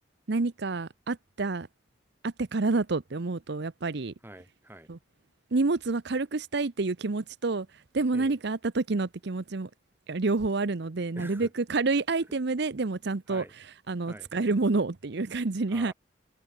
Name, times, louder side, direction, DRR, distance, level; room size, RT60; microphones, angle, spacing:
voice 1, 0.3-1.7 2.2-4.1 4.9-5.0 5.5-9.7 10.1-15.9, right 3 dB, 65° right, 0.8 m, -28 dB
voice 2, 4.2-4.9 8.1-8.3 11.2-11.5 13.3-13.5 14.0-14.3 15.7-15.9, right 1 dB, 10° right, 4.5 m, -45 dB
head